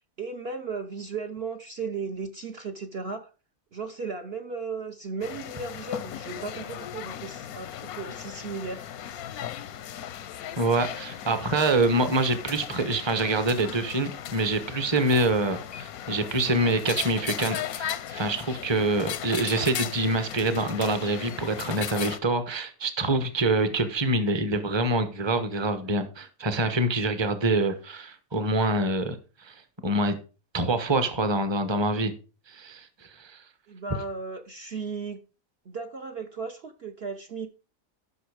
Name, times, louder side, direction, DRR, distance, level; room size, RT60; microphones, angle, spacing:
voice 1, 0.2-3.3 3.7-8.9 33.7-35.2 35.6-37.5, right 4 dB, 50° right, 4 dB, 1.0 m, -35 dB
sound 1, 5.2-22.2, left 10 dB, 90° left, 1.2 m, -37 dB
voice 2, 10.6-30.2 30.5-32.1 32.5-33.4, right 2 dB, 20° right, 10 dB, 1.0 m, -26 dB
12.5 x 6.2 x 4.9 m, 0.35 s
omnidirectional pair, 1.5 m